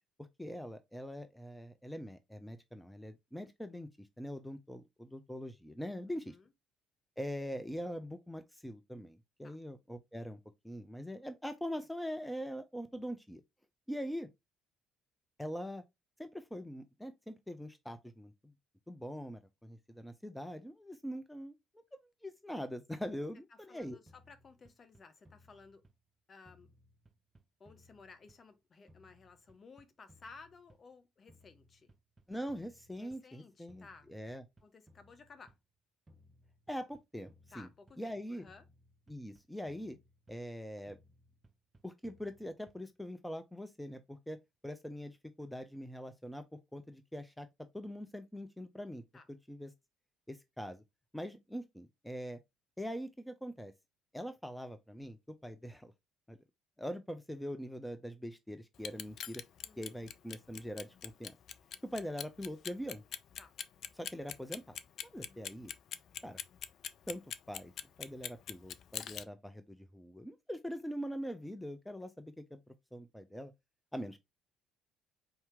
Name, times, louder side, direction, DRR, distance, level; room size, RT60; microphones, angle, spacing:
voice 1, 0.4-6.4 7.2-10.4 10.6-13.4 13.9-14.3 15.4-15.8 16.2-18.3 18.9-21.5 21.9-24.0 32.3-34.4 36.7-37.7 38.0-38.4 39.1-40.0 40.3-41.0 41.8-44.4 44.6-46.4 46.7-47.5 47.7-49.0 49.3-49.7 50.3-50.8 51.1-52.4 52.8-53.7 54.1-55.2 55.4-55.9 56.3-56.4 56.8-59.4 59.8-61.4 61.9-63.0 64.0-64.8 65.0-65.7 66.2-66.4 67.1-67.2 67.5-67.7 68.0-72.6 72.9-73.5 73.9-74.2, equal, 5° left, 0.6 m, -43 dB
voice 2, 6.1-6.5 9.4-9.6 23.5-25.8 26.3-26.7 27.6-31.9 33.0-34.1 34.6-35.6 37.5-38.6 49.1-49.3 59.6-59.9 63.4-63.6 65.2-65.5, left 4 dB, 40° left, 0.9 m, -57 dB
sound 1, 24.1-26.1 26.4-28.6 28.9-31.0 31.3-33.4 33.7-35.7 36.1-38.2 38.5-40.6 40.9-43.0, equal, 25° right, 1.0 m, -64 dB
Clock, 58.7-69.2, left 8 dB, 55° left, 0.4 m, -42 dB
4.4 x 2.9 x 3.5 m
hypercardioid pair, 55°, 0 cm